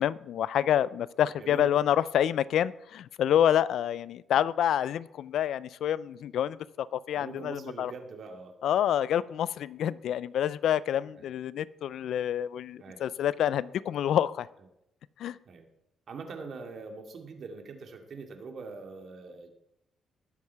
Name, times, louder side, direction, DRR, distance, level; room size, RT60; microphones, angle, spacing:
voice 1, 0.0-7.9 8.6-14.5 15.2-15.4, left 10 dB, 75° left, 19 dB, 0.4 m, -27 dB
voice 2, 1.4-1.7 4.3-4.4 7.1-8.5 9.1-9.2 11.2-11.3 12.8-13.0 15.5-15.7 16.1-19.6, right 4 dB, 55° right, 4 dB, 2.4 m, -43 dB
19.5 x 7.4 x 4.7 m, 0.81 s
cardioid pair, 90°, 0 cm